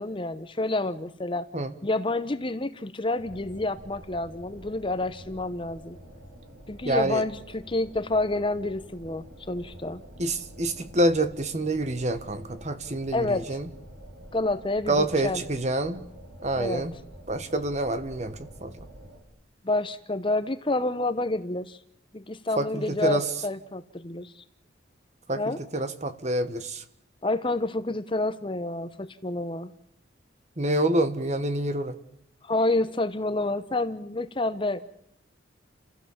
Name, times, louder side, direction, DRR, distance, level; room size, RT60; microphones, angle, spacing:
voice 1, 0.0-1.5 1.8-6.0 6.7-10.0 13.1-13.6 14.3-15.4 16.6-16.8 19.6-21.8 22.1-24.3 25.4-25.6 27.2-29.7 32.4-34.8, left 2 dB, 25° left, 13 dB, 0.8 m, -28 dB
sound 1, 3.2-19.2, equal, 85° right, 5.0 m, -47 dB
voice 2, 6.8-7.2 10.2-13.6 14.9-16.0 16.4-16.9 17.3-18.7 22.6-23.2 25.3-26.8 30.6-32.0, right 1 dB, 35° right, 11 dB, 1.4 m, -27 dB
29.5 x 15.5 x 7.2 m, 0.72 s
head